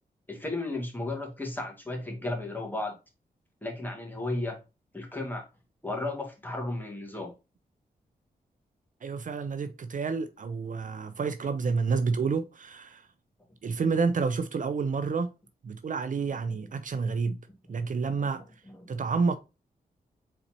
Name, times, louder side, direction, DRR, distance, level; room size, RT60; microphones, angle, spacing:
voice 1, 0.3-3.0 3.6-4.6 4.9-5.4 5.8-7.3 16.5-16.7 17.6-17.7 18.2-18.3 18.7-18.8, left 2 dB, 10° left, 1.9 m, -34 dB
voice 2, 9.0-13.1 13.6-15.3 15.6-17.4 17.7-18.4 18.9-19.4, right 5 dB, 55° right, 0.5 m, -29 dB
4.2 x 4.0 x 2.8 m
cardioid pair, 75°, 16 cm